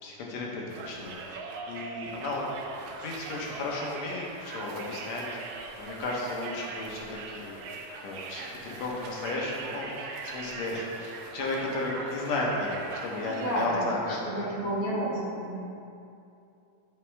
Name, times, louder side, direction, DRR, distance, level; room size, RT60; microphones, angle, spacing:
voice 1, 0.0-2.4 3.0-7.6 8.0-14.0 14.3-14.5, left 2 dB, 70° left, -2 dB, 2.1 m, -34 dB
Conversation, 0.7-13.7, right 4 dB, 80° right, 1.5 m, -41 dB
voice 2, 13.2-15.6, equal, 50° left, -7 dB, 2.7 m, -31 dB
8.2 x 7.1 x 3.4 m, 2.6 s
omnidirectional pair, 3.4 m